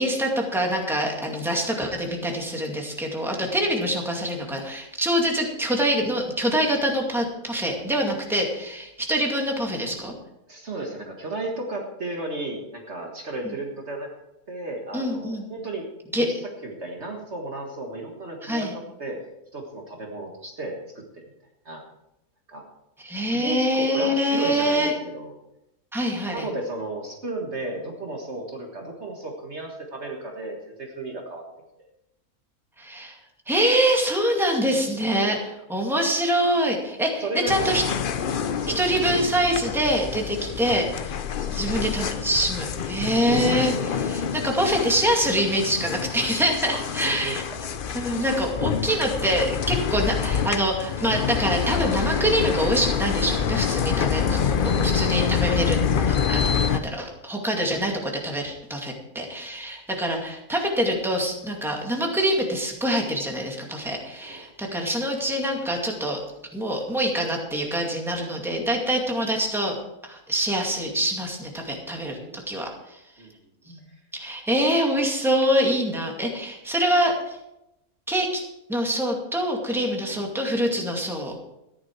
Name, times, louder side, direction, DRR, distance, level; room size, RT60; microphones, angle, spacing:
voice 1, 0.0-10.1 13.4-13.5 14.9-15.4 16.1-16.3 18.4-18.7 23.0-24.9 25.9-26.5 32.8-33.2 33.5-37.8 38.7-41.1 41.5-47.4 47.9-66.2 66.5-69.7 70.0-73.0 73.7-73.8 74.1-77.4 78.1-78.4 78.7-81.3, equal, ahead, 0 dB, 2.2 m, -25 dB
voice 2, 10.5-14.1 14.5-15.9 16.1-16.4 16.6-19.2 19.5-21.3 21.7-21.8 22.5-22.6 23.3-25.3 26.3-31.4 31.8-31.9 35.2-35.4 37.2-37.8 38.6-39.2 40.4-40.6 41.4-41.6 41.9-42.0 46.7-47.6 64.2-64.4 64.7-64.8 72.1-72.5 73.2-73.3 80.1-80.2, right 2 dB, 50° right, 1 dB, 1.8 m, -34 dB
sound 1, 37.5-56.8, left 7 dB, 55° left, 0.6 m, -26 dB
14.0 x 11.0 x 4.6 m, 0.87 s
omnidirectional pair, 1.6 m